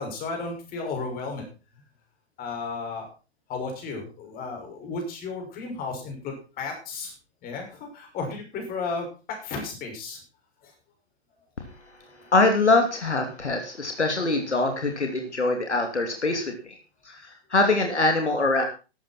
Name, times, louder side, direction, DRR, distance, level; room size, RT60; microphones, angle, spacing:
voice 1, 0.0-1.4 2.4-3.1 3.5-7.1 7.4-9.1 9.4-10.2 10.6-10.7, left 4 dB, 25° left, 2 dB, 6.1 m, -33 dB
voice 2, 12.3-16.7 17.0-18.6, left 2 dB, 75° left, 4 dB, 2.9 m, -23 dB
15.0 x 12.0 x 4.5 m, 0.34 s
figure-of-eight pair, 110°, 34 cm